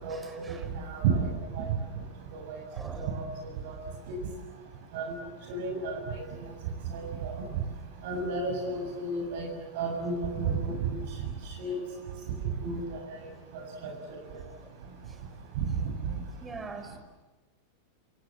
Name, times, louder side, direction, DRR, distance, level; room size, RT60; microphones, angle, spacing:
voice 1, 0.1-0.7 2.7-3.1 16.4-17.0, right 4 dB, 15° right, 6 dB, 5.3 m, -43 dB
voice 2, 0.8-1.3 1.6-1.7 2.3-2.4 3.0-3.2 3.6-3.7 4.1-4.2 4.9-5.0 5.5-6.2 6.9-7.3 8.0-9.5 9.8-10.8 11.6-11.8 12.6-12.8 13.8-13.9, right 4 dB, 50° right, 2 dB, 7.0 m, -31 dB
28.0 x 28.0 x 7.4 m, 1.2 s
figure-of-eight pair, 90°, 0 cm